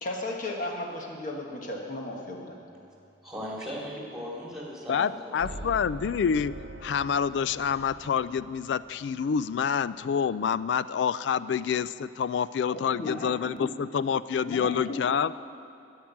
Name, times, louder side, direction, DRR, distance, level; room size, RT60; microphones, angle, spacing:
voice 1, 0.0-2.6 12.7-13.7 14.4-15.1, left 1 dB, 45° left, 0 dB, 1.5 m, -35 dB
voice 2, 3.2-5.6, equal, 5° right, -4 dB, 2.6 m, -38 dB
voice 3, 4.9-6.5 6.8-15.3, left 7 dB, 65° left, 16 dB, 0.3 m, -27 dB
sound 1, 5.4-10.1, right 2 dB, 80° right, 0.8 m, -43 dB
13.0 x 6.0 x 9.4 m, 2.8 s
head